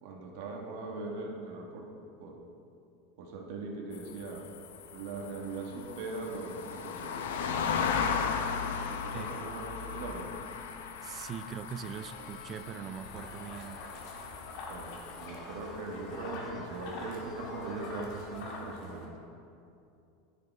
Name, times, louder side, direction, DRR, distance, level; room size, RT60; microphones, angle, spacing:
voice 1, 0.0-1.9 2.2-2.4 3.2-4.4 4.9-7.2 8.9-10.3 14.7-19.1, right 3 dB, 65° right, 1 dB, 1.2 m, -40 dB
sound 1, 3.9-15.3, left 6 dB, 85° left, 0.6 m, -36 dB
voice 2, 9.1-9.6 11.0-13.9, right 8 dB, 35° right, 13 dB, 0.3 m, -42 dB
sound 2, 11.8-18.4, left 2 dB, 40° left, 1.5 m, -54 dB
sound 3, 13.1-19.1, left 3 dB, 60° left, 1.6 m, -44 dB
10.5 x 6.7 x 3.4 m, 2.6 s
supercardioid pair, 130°, 0 cm